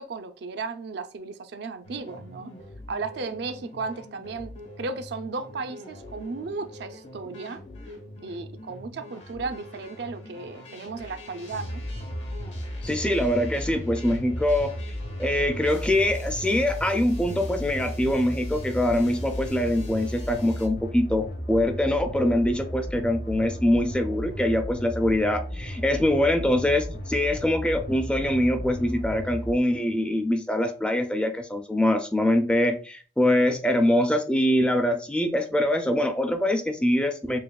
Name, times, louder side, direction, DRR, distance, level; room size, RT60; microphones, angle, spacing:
voice 1, 0.0-2.5 2.9-7.6 8.2-11.8, right 4 dB, 65° right, 0.4 m, -35 dB
sound 1, 1.8-20.7, left 1 dB, 75° left, 1.2 m, -45 dB
sound 2, 11.5-29.5, equal, 60° left, 0.8 m, -34 dB
voice 2, 12.8-14.7 15.2-37.4, left 1 dB, 5° left, 0.4 m, -24 dB
6.3 x 2.3 x 2.3 m
head